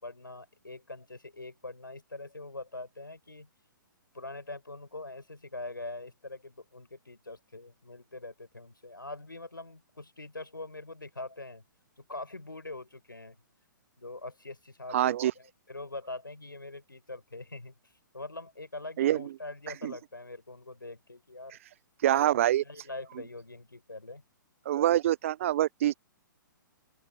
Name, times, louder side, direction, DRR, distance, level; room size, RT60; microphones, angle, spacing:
voice 1, 0.0-3.5 4.1-11.6 12.0-13.4 14.0-21.6 22.0-24.2, left 2 dB, 80° left, 4.6 m, -43 dB
voice 2, 14.9-15.3 19.0-19.3 19.8-19.9 22.0-22.6 24.7-26.0, right 12 dB, 40° right, 0.5 m, -25 dB
open air
figure-of-eight pair, 120°, 11 cm